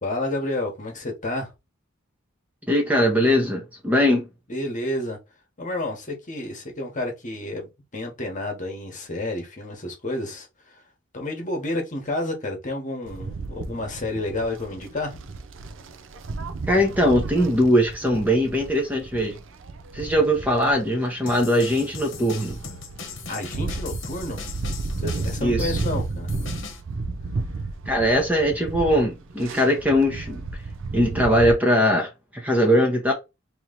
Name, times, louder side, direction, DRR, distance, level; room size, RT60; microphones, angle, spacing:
voice 1, 0.0-1.5 4.5-5.2 5.6-10.8 11.1-15.2 23.3-24.4 25.0-26.3, left 1 dB, 40° left, 1.2 m, -30 dB
voice 2, 2.7-4.3 16.7-19.4 19.9-22.6 25.4-25.7 27.9-30.4 30.9-33.1, equal, 10° right, 0.8 m, -21 dB
sound 1, 13.0-31.5, right 3 dB, 70° right, 0.5 m, -33 dB
sound 2, 21.3-26.8, left 5 dB, 65° left, 1.0 m, -39 dB
3.1 x 2.9 x 3.9 m
head